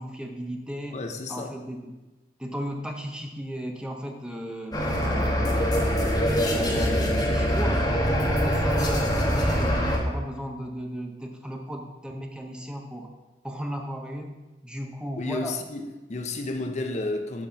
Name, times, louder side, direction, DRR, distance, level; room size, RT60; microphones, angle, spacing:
voice 1, 0.0-1.0 1.3-1.9 2.4-5.7 6.4-13.1 13.4-14.3 14.6-15.6, equal, 5° right, 2 dB, 0.7 m, -35 dB
voice 2, 0.9-1.5 15.2-17.5, left 2 dB, 40° left, 5 dB, 0.6 m, -31 dB
sound 1, 4.7-10.0, equal, 20° left, 1.2 m, -23 dB
7.7 x 4.2 x 6.1 m, 1.1 s
head